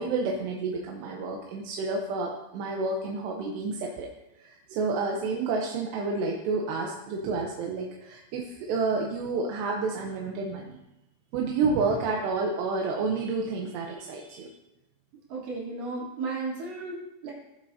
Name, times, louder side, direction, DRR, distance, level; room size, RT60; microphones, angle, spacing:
voice 1, 0.0-4.1 4.4-10.8 11.3-14.5, right 4 dB, 85° right, 0 dB, 3.1 m, -30 dB
voice 2, 15.3-17.3, right 3 dB, 55° right, -7 dB, 4.7 m, -34 dB
17.5 x 7.6 x 2.8 m, 0.93 s
omnidirectional pair, 4.8 m